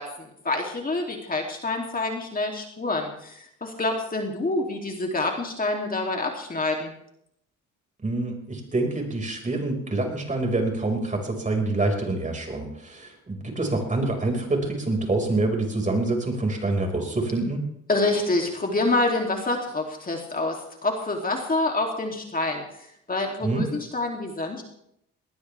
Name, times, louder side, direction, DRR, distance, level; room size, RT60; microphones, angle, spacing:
voice 1, 0.0-6.9 17.9-22.6 23.1-24.6, left 2 dB, 30° left, 1 dB, 2.9 m, -27 dB
voice 2, 8.0-17.6 23.4-23.7, right 2 dB, 25° right, 2 dB, 5.4 m, -26 dB
20.0 x 19.5 x 3.5 m, 0.74 s
cardioid pair, 90°, 30 cm